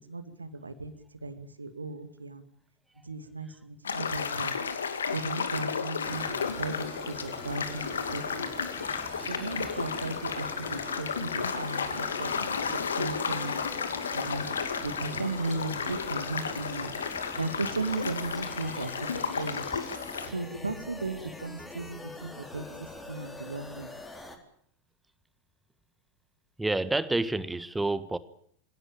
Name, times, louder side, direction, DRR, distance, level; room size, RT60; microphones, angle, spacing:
voice 1, 0.1-0.9 1.2-2.5 3.0-4.5 5.1-8.5 9.2-12.4 12.9-13.6 14.1-14.5 14.8-16.9 17.3-19.7 20.2-23.9, right 3 dB, 80° right, 10 dB, 2.5 m, -36 dB
sound 1, 3.8-20.3, left 6 dB, 70° left, 2.6 m, -33 dB
sound 2, 6.0-24.4, left 2 dB, 10° left, 4.3 m, -44 dB
voice 2, 26.6-28.2, right 2 dB, 5° right, 16 dB, 1.4 m, -28 dB
26.0 x 17.0 x 9.0 m, 0.64 s
figure-of-eight pair, 90°, 0 cm